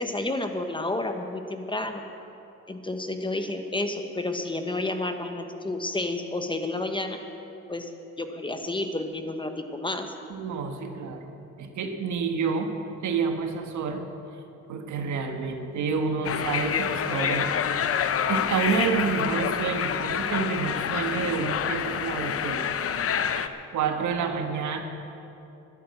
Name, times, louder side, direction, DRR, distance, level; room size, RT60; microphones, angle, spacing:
voice 1, 0.0-2.0 2.7-7.2 7.7-7.9 8.2-10.1, left 2 dB, 15° left, 6 dB, 1.1 m, -30 dB
voice 2, 10.3-11.3 11.6-12.7 13.0-14.0 14.7-17.5 18.3-22.7 23.7-24.8, right 5 dB, 70° right, 5 dB, 1.4 m, -28 dB
sound 1, 16.2-23.5, left 8 dB, 50° left, 0.7 m, -27 dB
12.0 x 9.0 x 8.9 m, 2.9 s
cardioid pair, 90°, 30 cm